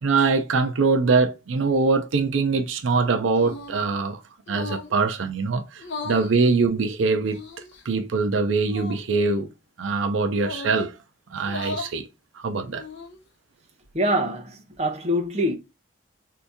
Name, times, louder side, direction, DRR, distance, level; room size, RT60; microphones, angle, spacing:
voice 1, 0.0-4.2 4.5-7.4 7.9-9.5 9.8-11.0 11.3-12.1 12.4-12.8, right 4 dB, 85° right, 0.5 m, -23 dB
sound 1, 3.4-3.8 4.5-5.0 5.8-6.3 7.3-7.8 8.6-9.0 10.4-10.8 11.4-12.0 12.6-13.2, left 3 dB, 65° left, 0.6 m, -36 dB
voice 2, 13.9-15.5, equal, 35° right, 0.7 m, -24 dB
2.8 x 2.6 x 3.4 m
head